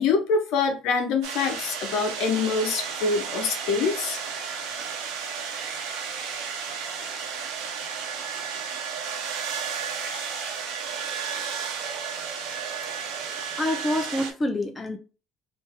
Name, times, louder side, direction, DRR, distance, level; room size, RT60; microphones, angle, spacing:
voice 1, 0.0-4.2, left 5 dB, 75° left, 0.9 m, -25 dB
sound 1, 1.2-14.3, right 6 dB, 85° right, 0.9 m, -33 dB
voice 2, 13.6-15.0, left 1 dB, 20° left, 0.6 m, -27 dB
3.4 x 2.7 x 3.6 m
cardioid pair, 110°, 0 cm